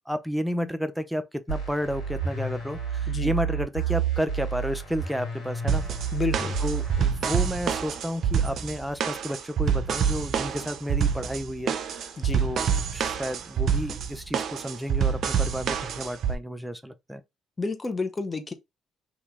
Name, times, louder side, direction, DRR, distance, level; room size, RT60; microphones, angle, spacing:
voice 1, 0.1-5.8 6.6-12.1 12.4-17.2, equal, 5° right, 0.5 m, -31 dB
sound 1, 1.5-7.1, right 6 dB, 75° left, 1.7 m, -30 dB
sound 2, 5.7-16.4, right 7 dB, 60° right, 0.4 m, -27 dB
voice 2, 6.1-6.6 12.2-12.5 17.6-18.5, left 3 dB, 30° left, 0.8 m, -30 dB
2.9 x 2.8 x 3.3 m
hypercardioid pair, 50°, 0 cm